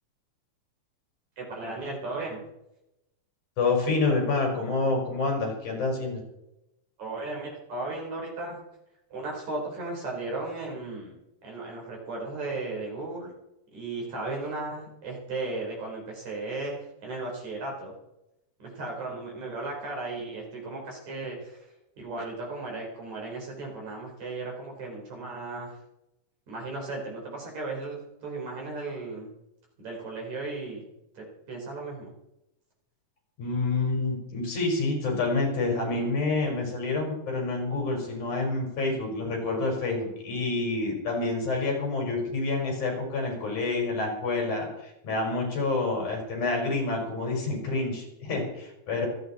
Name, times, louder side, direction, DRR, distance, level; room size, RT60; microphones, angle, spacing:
voice 1, 1.4-2.4 7.0-8.6 9.1-13.3 13.7-16.8 17.0-17.9 18.6-21.7 22.0-25.8 26.5-29.3 29.8-30.9 31.2-32.1, right 2 dB, 60° right, -1 dB, 5.4 m, -35 dB
voice 2, 3.6-6.2 33.4-49.1, left 3 dB, 70° left, 0 dB, 6.2 m, -28 dB
26.0 x 9.1 x 4.2 m, 0.88 s
omnidirectional pair, 3.6 m